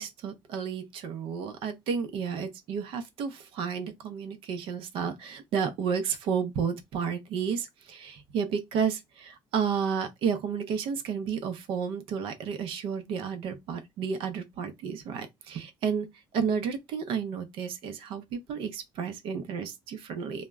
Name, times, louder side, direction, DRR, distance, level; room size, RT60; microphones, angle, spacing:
voice 1, 0.0-16.1 16.3-20.5, right 6 dB, 80° right, 0.6 m, -32 dB
2.2 x 2.0 x 3.4 m
cardioid pair, 135°, 9 cm